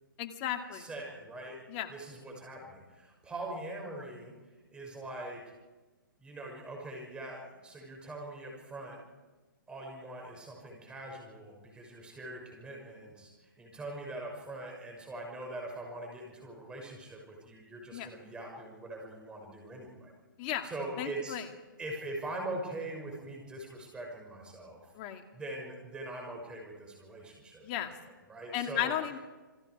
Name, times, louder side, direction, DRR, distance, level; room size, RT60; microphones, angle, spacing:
voice 1, 0.2-0.9 1.7-1.9 17.9-18.1 20.4-20.7 21.0-21.4 24.9-25.2 27.6-27.9 28.5-29.2, left 11 dB, 30° left, 5 dB, 2.2 m, -34 dB
voice 2, 0.7-1.6 1.9-4.3 4.7-5.4 6.2-9.0 9.7-20.1 20.6-21.4 21.8-24.8 25.3-27.9 28.3-28.9, right 2 dB, 10° right, 0 dB, 6.5 m, -42 dB
29.0 x 22.5 x 4.9 m, 1.2 s
hypercardioid pair, 150°, 11 cm